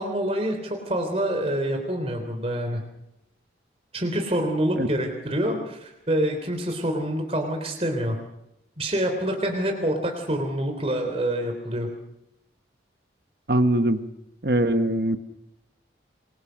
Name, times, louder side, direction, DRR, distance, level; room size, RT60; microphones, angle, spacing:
voice 1, 0.0-2.8 3.9-8.2 8.8-11.9, right 1 dB, 30° right, 4 dB, 3.5 m, -26 dB
voice 2, 13.5-14.0 14.4-15.2, right 1 dB, 55° right, 8 dB, 1.2 m, -21 dB
27.5 x 22.5 x 6.4 m, 0.86 s
head